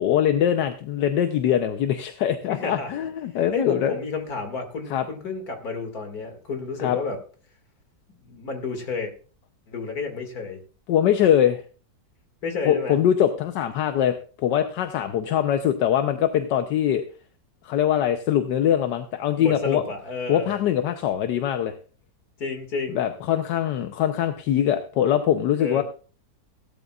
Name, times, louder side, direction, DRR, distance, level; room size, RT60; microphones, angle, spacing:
voice 1, 0.0-4.0 4.9-5.0 6.8-7.0 10.9-11.6 12.6-17.0 17.6-19.8 20.3-21.7 22.9-25.8, left 10 dB, 80° left, 7 dB, 1.4 m, -22 dB
voice 2, 2.5-2.9 3.5-7.2 8.2-9.1 9.7-10.6 12.4-13.0 19.3-20.6 22.4-23.0 25.6-25.8, left 4 dB, 60° left, 5 dB, 2.7 m, -31 dB
17.0 x 12.0 x 2.4 m, 0.38 s
omnidirectional pair, 1.8 m